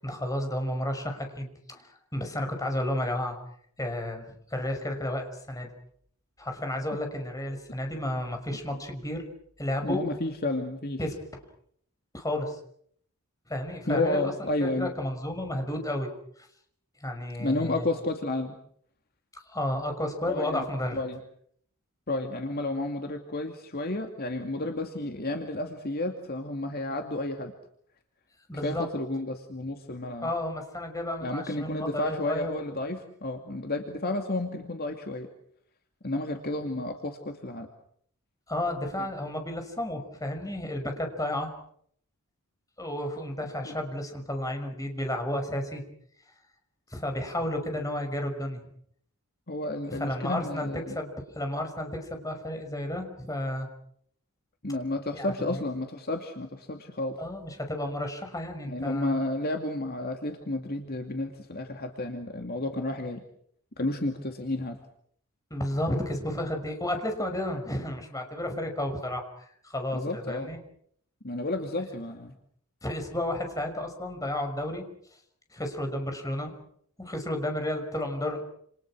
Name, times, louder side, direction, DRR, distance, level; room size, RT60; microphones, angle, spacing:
voice 1, 0.0-3.4 3.8-5.7 6.4-9.2 9.6-10.0 11.0-11.2 12.1-12.6 13.5-14.2 14.6-16.1 16.4-16.5 17.0-17.9 19.3-21.0 28.5-28.9 30.2-32.5 38.5-41.5 42.8-45.8 46.9-48.7 49.9-53.7 55.1-55.6 57.2-59.1 65.5-70.6 72.8-74.9 75.5-76.5 77.0-78.4, left 1 dB, 15° left, 4 dB, 5.9 m, -32 dB
voice 2, 9.8-11.0 13.9-14.9 17.4-18.6 20.3-20.7 20.9-21.2 22.1-27.5 28.6-30.3 31.2-35.3 36.0-37.7 43.6-43.8 49.5-51.0 54.6-57.2 58.7-63.2 63.8-64.8 69.9-70.5 71.2-72.3, left 2 dB, 45° left, 4 dB, 2.6 m, -31 dB
29.5 x 29.0 x 6.3 m, 0.67 s
head